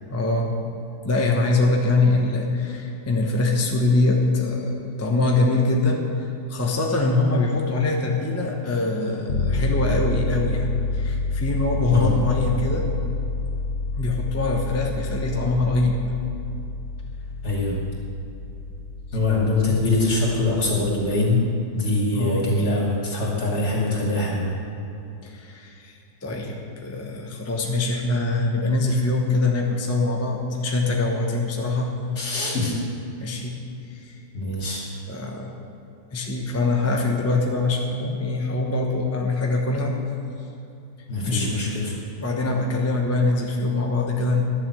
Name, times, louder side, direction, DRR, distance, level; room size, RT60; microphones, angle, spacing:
voice 1, 0.1-0.5 1.0-12.9 14.0-16.0 22.1-22.5 25.2-31.9 33.2-33.6 33.9-34.2 35.1-35.6 36.1-39.9 41.3-41.6 42.2-44.5, left 2 dB, 10° left, 0 dB, 0.8 m, -23 dB
sound 1, 9.3-21.2, left 3 dB, 40° left, 1.0 m, -29 dB
voice 2, 17.4-17.7 19.1-21.4 21.7-24.5 32.2-32.7 34.3-34.8 41.1-41.9, left 2 dB, 60° left, -4 dB, 3.2 m, -23 dB
11.5 x 7.4 x 7.7 m, 2.8 s
omnidirectional pair, 2.0 m